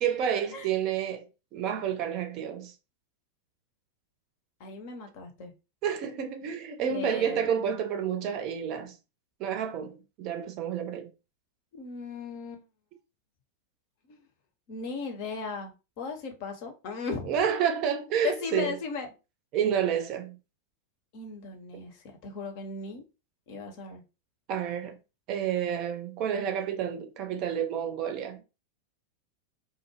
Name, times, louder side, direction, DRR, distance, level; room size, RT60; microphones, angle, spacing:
voice 1, 0.0-2.7 5.8-9.0 9.4-11.1 17.3-18.8 19.5-20.4 24.5-25.0 25.3-28.4, right 8 dB, 40° right, 0.5 m, -30 dB
voice 2, 4.6-5.5 6.9-7.5 11.7-12.6 14.7-17.3 18.2-19.1 21.1-21.9 22.2-23.0 23.5-24.0, left 5 dB, 45° left, 0.7 m, -36 dB
2.3 x 2.0 x 3.2 m
figure-of-eight pair, 90°, 0 cm